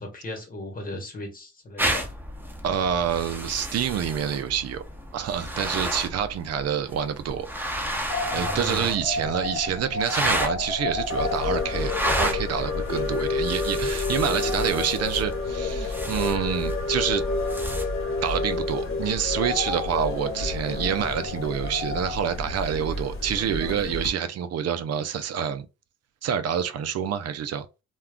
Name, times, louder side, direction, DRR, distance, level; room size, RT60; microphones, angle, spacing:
voice 1, 0.0-2.1 8.3-9.3, left 1 dB, 30° left, 1.3 m, -37 dB
sound 1, 1.8-17.8, equal, 5° right, 0.9 m, -32 dB
voice 2, 2.6-4.8 5.1-7.5 8.3-17.2 18.2-25.7 26.2-27.7, right 8 dB, 55° right, 0.5 m, -27 dB
sound 2, 8.1-13.5 13.7-13.8 14.2-16.5 17.2-19.0 19.3-23.2, left 3 dB, 80° left, 0.9 m, -35 dB
sound 3, 11.1-24.1, left 3 dB, 45° left, 1.0 m, -29 dB
2.3 x 2.3 x 3.5 m
cardioid pair, 90°, 30 cm